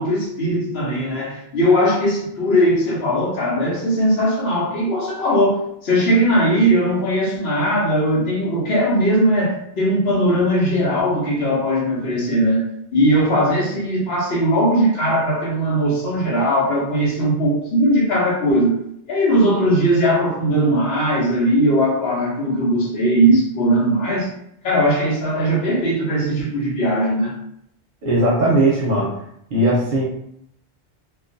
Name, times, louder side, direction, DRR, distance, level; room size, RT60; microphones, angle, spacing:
voice 1, 0.0-12.6 12.9-18.8 19.1-24.3 24.6-27.3, equal, 65° left, -4 dB, 1.0 m, -19 dB
voice 2, 28.0-29.2 29.5-30.0, right 1 dB, 55° right, -4 dB, 0.7 m, -18 dB
2.3 x 2.3 x 2.5 m, 0.74 s
omnidirectional pair, 1.2 m